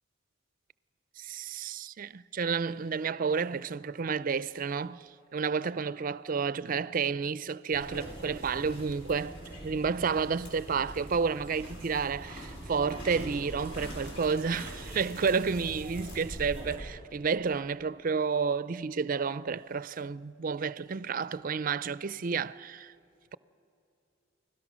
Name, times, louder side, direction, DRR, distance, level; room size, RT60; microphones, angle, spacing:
voice 1, 1.2-22.9, right 5 dB, 45° right, 0.4 m, -31 dB
sound 1, 7.7-16.8, right 1 dB, 60° left, 6.6 m, -42 dB
29.5 x 20.5 x 6.2 m
head